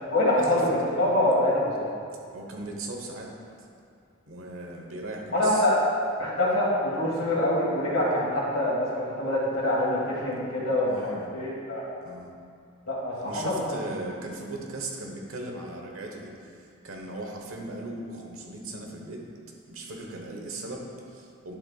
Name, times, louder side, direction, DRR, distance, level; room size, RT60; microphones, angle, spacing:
voice 1, 0.1-1.9 5.3-5.8 6.2-11.8 12.9-13.6, left 1 dB, 80° left, -7 dB, 2.0 m, -25 dB
voice 2, 2.3-3.3 3.6-3.7 4.3-5.8 7.3-7.4 10.9-11.3 12.0-12.4 13.2-19.2 19.7-21.5, right 2 dB, 85° right, 1 dB, 1.2 m, -38 dB
11.0 x 7.4 x 2.4 m, 2.4 s
head